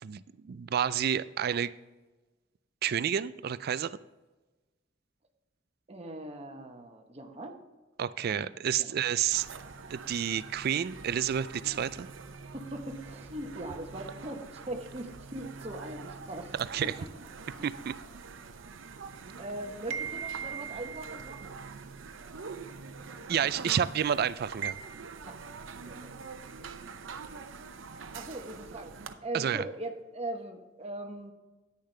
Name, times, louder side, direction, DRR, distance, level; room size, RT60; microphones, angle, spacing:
voice 1, 0.0-1.7 2.8-4.0 8.0-9.5 9.9-12.1 16.5-16.9 17.6-17.9 23.3-24.8 29.3-29.7, right 9 dB, 50° right, 16 dB, 0.3 m, -30 dB
voice 2, 5.9-7.6 8.3-8.5 8.8-8.9 12.5-16.5 16.8-17.1 19.2-21.6 25.2-25.4 25.8-26.1 28.1-31.3, right 1 dB, 30° right, 3 dB, 1.1 m, -40 dB
sound 1, 9.3-29.1, right 5 dB, 80° right, 0.7 m, -43 dB
10.0 x 9.8 x 3.3 m, 1.2 s
head